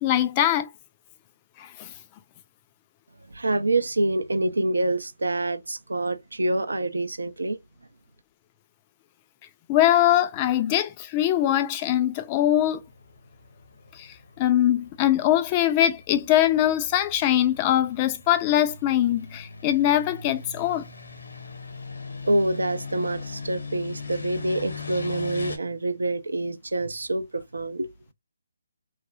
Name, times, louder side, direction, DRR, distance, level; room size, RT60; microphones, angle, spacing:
voice 1, 0.0-0.7 1.6-1.9 9.7-12.8 14.0-14.1 14.4-20.9, left 12 dB, 25° left, 0.3 m, -22 dB
voice 2, 3.3-7.6 22.2-27.9, right 2 dB, 80° right, 0.5 m, -26 dB
sound 1, 12.6-25.6, left 5 dB, 75° left, 0.8 m, -40 dB
3.0 x 2.0 x 2.3 m
figure-of-eight pair, 150°, 0 cm